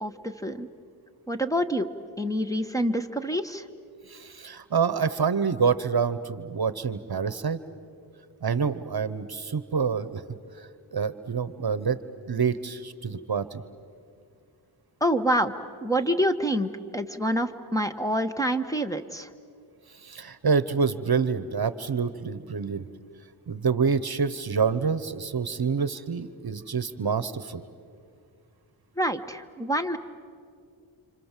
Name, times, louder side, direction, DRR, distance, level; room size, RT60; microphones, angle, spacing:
voice 1, 0.0-0.7 1.3-1.9 2.2-3.6 15.0-15.5 15.8-19.3 29.0-30.0, equal, 5° left, 7 dB, 1.4 m, -27 dB
voice 2, 4.1-7.6 8.4-10.2 10.9-12.0 12.3-13.6 20.0-22.9 23.5-27.6, right 6 dB, 50° right, 14 dB, 1.1 m, -27 dB
30.0 x 26.5 x 7.5 m, 2.3 s
cardioid pair, 60°, 48 cm